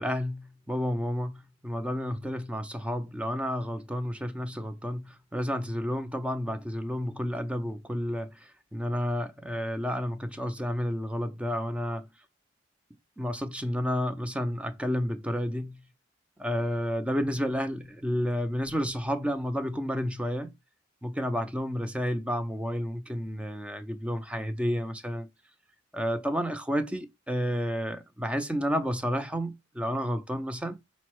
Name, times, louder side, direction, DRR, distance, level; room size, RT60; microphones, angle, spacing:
voice 1, 0.0-12.1 13.2-15.9 16.4-20.5 21.0-25.3 25.9-30.8, equal, 5° right, 0.4 m, -31 dB
5.1 x 2.0 x 4.4 m
head